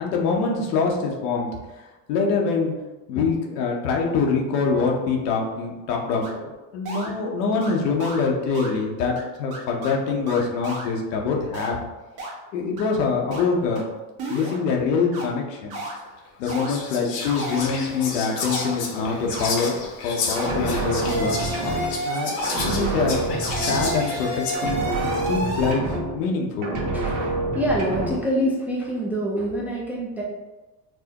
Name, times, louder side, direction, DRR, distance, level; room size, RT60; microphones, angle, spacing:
voice 1, 0.0-1.5 1.8-2.7 3.1-11.8 12.5-13.8 14.3-15.8 16.4-19.7 20.0-21.4 22.0-23.2 23.5-24.8 25.3-26.8, left 4 dB, 90° left, 0 dB, 0.9 m, -24 dB
sound 1, 6.2-6.3 6.9-7.1 7.6-7.7 8.0-8.2 8.5-8.7 9.2-9.3 9.5-9.9 10.3-10.9 11.5-11.7 12.2-12.3 12.8-12.9 13.3-13.4 13.8-13.9 14.2-14.6 15.1-15.2 15.7-15.9 16.5-16.7 17.2-17.7 18.3-18.7 19.3-19.5 20.3-20.5 21.0-22.8 23.4-25.7, right 1 dB, 50° right, 1.1 m, -31 dB
Whispering, 15.9-16.0 16.4-24.5, left 4 dB, 60° left, 0.8 m, -32 dB
sound 2, 20.3-22.2 22.4-24.3 24.5-26.4 26.6-28.3, right 2 dB, 65° right, 1.1 m, -28 dB
voice 2, 26.9-30.2, equal, 5° right, -5 dB, 0.4 m, -26 dB
4.5 x 2.1 x 2.8 m, 1.1 s
supercardioid pair, 125°, 47 cm